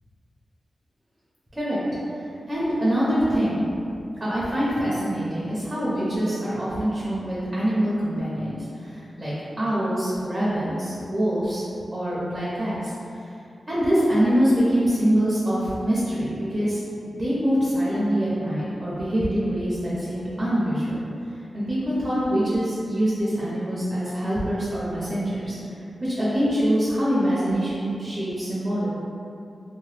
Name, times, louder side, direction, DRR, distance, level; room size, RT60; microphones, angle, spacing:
voice 1, 2.2-3.7 4.2-11.6 11.9-13.3 13.7-16.8 17.2-21.0 21.5-25.6 26.0-28.9, equal, 20° right, -9 dB, 0.5 m, -24 dB
2.9 x 2.1 x 3.1 m, 2.6 s
wide cardioid pair, 170°, 0 cm